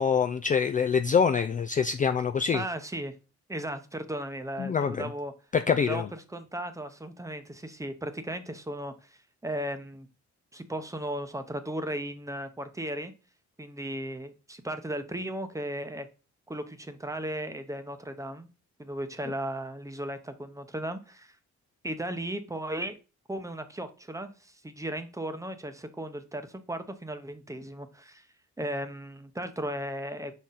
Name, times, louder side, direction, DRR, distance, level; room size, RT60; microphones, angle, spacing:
voice 1, 0.0-2.6 4.6-5.1 5.5-6.1, left 6 dB, 30° left, 0.4 m, -25 dB
voice 2, 2.5-3.1 3.5-5.3 5.8-10.1 10.5-13.1 13.6-16.1 16.5-18.5 18.8-21.3 21.8-23.0 23.3-28.2 28.6-30.3, right 1 dB, 10° right, 0.8 m, -36 dB
5.9 x 4.2 x 3.9 m
cardioid pair, 90°, 30 cm